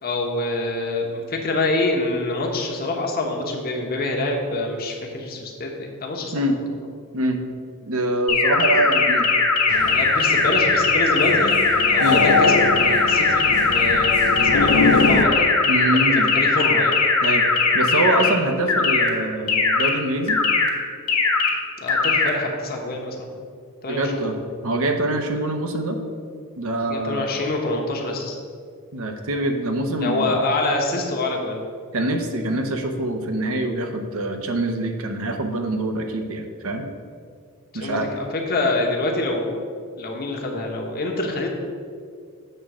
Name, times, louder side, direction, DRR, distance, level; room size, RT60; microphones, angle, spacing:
voice 1, 0.0-6.4 9.8-14.1 14.4-15.5 15.9-16.9 21.8-23.5 23.8-24.3 26.9-28.4 30.0-31.6 37.7-39.6 40.0-41.5, left 2 dB, 45° left, 1 dB, 1.0 m, -26 dB
voice 2, 7.8-9.3 12.0-12.2 15.7-16.3 17.2-20.4 23.9-24.4 24.6-26.0 26.6-27.2 28.9-30.3 31.9-36.9 37.7-38.1, right 1 dB, 65° right, 5 dB, 0.8 m, -24 dB
sound 1, 8.3-18.3 18.7-19.1 19.5-19.9 20.3-20.7 21.1-21.5 21.9-22.3, left 4 dB, 85° left, 1.2 m, -19 dB
sound 2, 9.7-15.2, left 3 dB, 70° left, 0.5 m, -23 dB
7.8 x 3.7 x 6.1 m, 2.1 s
head